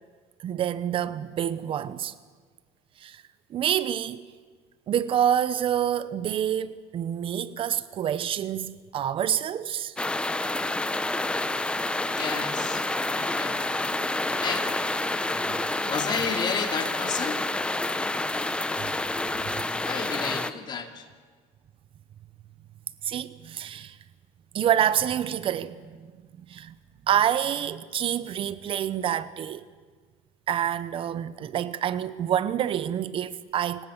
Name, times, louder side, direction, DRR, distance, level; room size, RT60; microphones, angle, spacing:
voice 1, 0.4-2.1 3.0-3.2 3.5-4.2 4.9-9.9 15.5-15.6 18.8-19.1 23.0-24.0 24.5-26.1 26.5-26.7 27.1-29.6 30.5-33.9, right 10 dB, 40° right, 0.8 m, -27 dB
sound 1, 10.0-20.5, left 2 dB, 5° left, 0.8 m, -28 dB
voice 2, 12.2-13.7 14.4-14.7 15.9-17.4 17.8-18.3 19.8-21.1, left 6 dB, 30° left, 2.5 m, -32 dB
29.5 x 17.5 x 7.2 m
cardioid pair, 135°, 14 cm